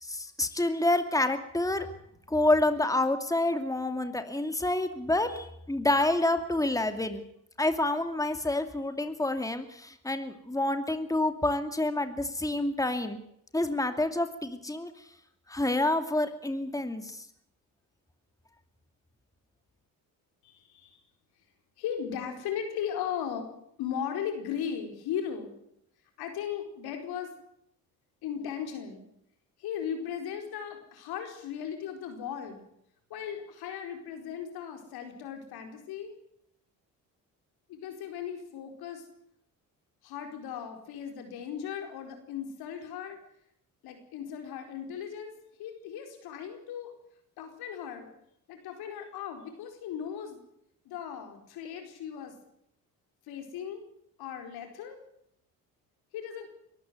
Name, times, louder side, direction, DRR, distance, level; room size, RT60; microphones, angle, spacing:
voice 1, 0.0-1.9 2.3-7.2 7.6-13.2 13.5-14.9 15.5-17.2, left 2 dB, 10° left, 8 dB, 2.5 m, -28 dB
voice 2, 20.4-21.0 21.8-23.5 23.8-25.5 26.2-27.3 28.2-29.0 29.6-32.6 33.1-36.1 37.7-39.0 40.0-43.2 43.8-45.3 45.6-46.9 47.4-48.1 48.5-50.4 50.8-52.3 53.3-53.8 54.2-55.0 56.1-56.5, left 8 dB, 80° left, 5 dB, 4.6 m, -37 dB
23.5 x 13.5 x 9.5 m, 0.74 s
supercardioid pair, 70°, 37 cm